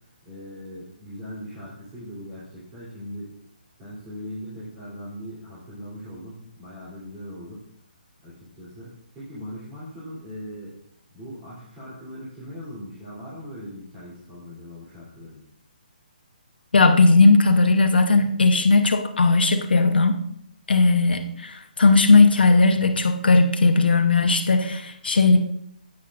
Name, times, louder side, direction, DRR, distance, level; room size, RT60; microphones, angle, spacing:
voice 1, 0.2-3.3 3.8-7.6 8.2-10.7 11.1-15.4, equal, 15° right, -10 dB, 3.0 m, -39 dB
voice 2, 16.7-20.2 20.7-25.5, left 3 dB, 85° left, 6 dB, 0.9 m, -17 dB
11.0 x 9.1 x 2.5 m, 0.71 s
hypercardioid pair, 160°, 5 cm